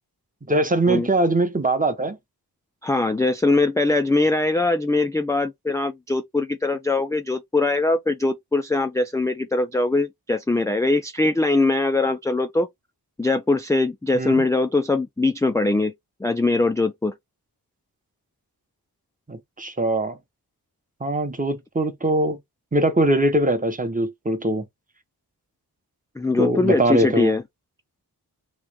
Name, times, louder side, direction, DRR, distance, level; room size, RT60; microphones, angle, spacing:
voice 1, 0.5-2.2 14.1-14.4 19.3-20.2 21.0-22.4 22.7-24.7 26.4-27.4, right 1 dB, 20° right, 0.9 m, -22 dB
voice 2, 2.8-12.7 13.2-15.9 16.2-17.1 26.2-27.4, left 2 dB, 10° left, 0.3 m, -22 dB
3.1 x 2.9 x 3.4 m
wide cardioid pair, 100°, 39 cm